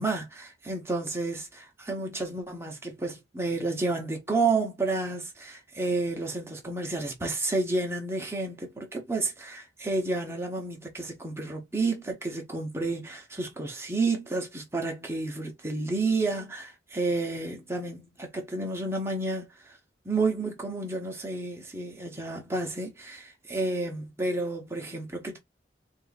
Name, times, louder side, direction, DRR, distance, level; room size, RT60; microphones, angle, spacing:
voice 1, 0.0-19.8 20.0-25.4, right 3 dB, 15° right, 1.0 m, -30 dB
3.9 x 2.7 x 4.0 m
head